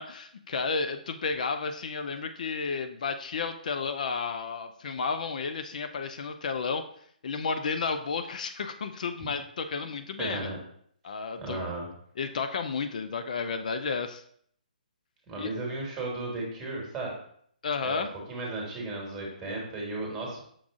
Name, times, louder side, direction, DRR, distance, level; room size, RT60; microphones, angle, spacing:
voice 1, 0.0-6.8 7.2-10.5 11.0-11.7 12.2-14.2 15.4-15.5 17.6-18.1, left 5 dB, 55° left, 8 dB, 0.4 m, -32 dB
voice 2, 10.2-10.6 11.4-11.9 15.3-17.1 17.8-20.4, right 2 dB, 15° right, -2 dB, 1.4 m, -35 dB
6.0 x 2.4 x 3.6 m, 0.64 s
figure-of-eight pair, 145°, 5 cm